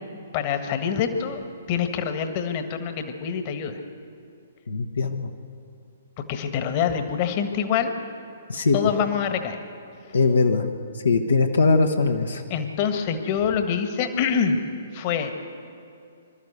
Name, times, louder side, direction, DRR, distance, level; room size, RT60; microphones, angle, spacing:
voice 1, 0.3-1.4 1.7-3.8 6.3-7.9 8.7-9.6 10.0-10.1 12.5-14.6 14.9-15.3, left 7 dB, 35° left, 7 dB, 1.6 m, -25 dB
voice 2, 4.7-5.3 8.5-8.8 10.1-10.7 11.0-12.4, left 3 dB, 70° left, 3 dB, 1.2 m, -21 dB
25.5 x 13.0 x 8.0 m, 2.5 s
figure-of-eight pair, 120°, 0 cm